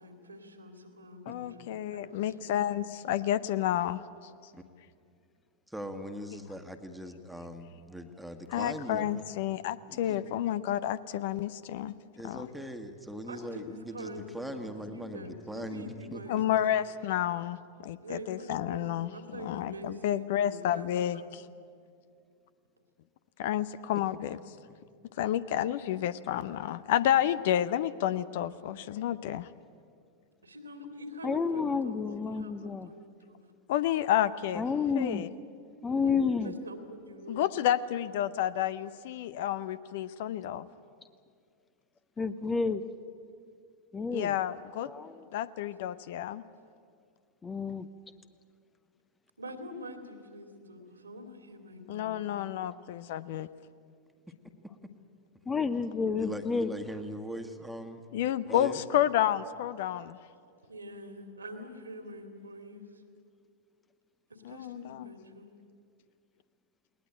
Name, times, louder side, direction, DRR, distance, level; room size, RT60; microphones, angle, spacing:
voice 1, 0.0-2.6 13.3-16.6 18.0-21.3 30.4-33.4 36.0-37.5 49.4-52.7 60.7-63.0 64.3-65.5, equal, 80° right, 6 dB, 2.5 m, -45 dB
voice 2, 1.3-4.0 8.5-11.9 12.2-12.5 16.3-21.4 23.4-24.4 25.2-29.5 33.7-34.6 35.0-35.3 37.3-40.7 44.1-44.9 45.3-46.4 51.9-53.5 58.1-60.2 64.4-65.1, left 11 dB, 55° left, 16 dB, 0.6 m, -30 dB
voice 3, 5.7-9.2 9.9-10.2 12.1-16.4 56.2-58.0 58.5-58.8, equal, ahead, 6 dB, 1.7 m, -40 dB
voice 4, 31.2-32.9 34.5-35.3 35.8-36.5 42.2-42.8 43.9-44.4 44.9-45.3 47.4-47.9 55.5-56.7, left 5 dB, 15° left, 12 dB, 0.8 m, -30 dB
20.0 x 19.0 x 9.0 m, 2.3 s
figure-of-eight pair, 90°, 0 cm